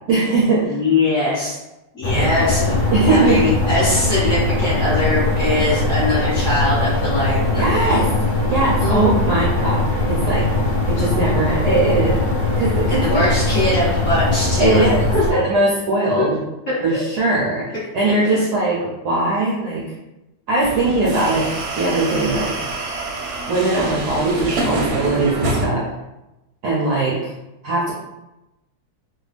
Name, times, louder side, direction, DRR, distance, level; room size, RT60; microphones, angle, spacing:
voice 1, 0.1-0.8 2.1-2.4 2.9-3.5 7.6-8.1 8.5-10.5 10.9-12.2 12.6-13.2 14.6-15.0 15.3-16.4 16.8-17.6 17.9-19.8 20.5-21.5 21.8-22.5 23.5-25.8 26.6-27.3 27.6-27.9, right 2 dB, 70° right, -5 dB, 0.9 m, -20 dB
voice 2, 0.7-1.6 1.9-2.8 3.1-7.7 8.8-9.2 12.9-14.8 15.1-15.4 16.2-16.3 16.7-16.8 18.1-18.5, left 2 dB, 35° left, -10 dB, 1.4 m, -21 dB
sound 1, 2.0-15.3, left 2 dB, 70° left, 0.9 m, -20 dB
sound 2, 20.6-25.7, right 2 dB, 85° right, 1.5 m, -26 dB
3.3 x 2.3 x 3.2 m, 0.97 s
omnidirectional pair, 2.3 m